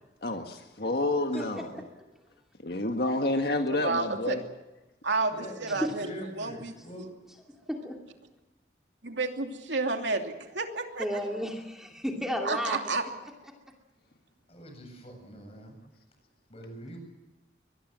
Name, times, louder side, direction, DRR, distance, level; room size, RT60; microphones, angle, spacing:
voice 1, 0.2-1.7 2.6-4.4, left 2 dB, 55° left, 5 dB, 1.7 m, -29 dB
voice 2, 3.8-4.4 5.0-6.7 9.0-11.2 12.4-13.0, right 3 dB, 80° right, 4 dB, 2.8 m, -31 dB
voice 3, 5.3-7.1 14.5-15.8 16.5-17.0, equal, 35° left, 3 dB, 7.9 m, -44 dB
voice 4, 11.0-12.8, equal, 5° right, 1 dB, 2.6 m, -32 dB
24.0 x 20.5 x 7.6 m, 1.1 s
head